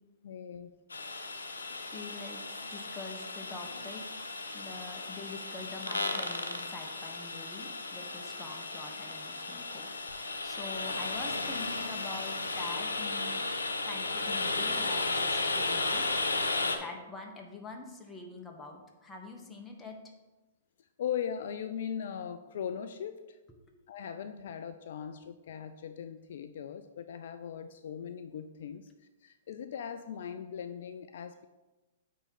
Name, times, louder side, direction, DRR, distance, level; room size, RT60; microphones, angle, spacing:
voice 1, 0.2-0.8 21.0-23.4 23.9-28.9 29.2-31.5, left 8 dB, 60° left, 9 dB, 0.4 m, -39 dB
sound 1, 0.9-16.8, left 3 dB, 85° left, 0.9 m, -34 dB
voice 2, 1.8-4.0 4.5-13.4 13.8-16.1 16.8-20.0, left 3 dB, 10° left, 1 dB, 1.4 m, -45 dB
8.7 x 3.8 x 5.9 m, 1.1 s
hypercardioid pair, 115°, 0 cm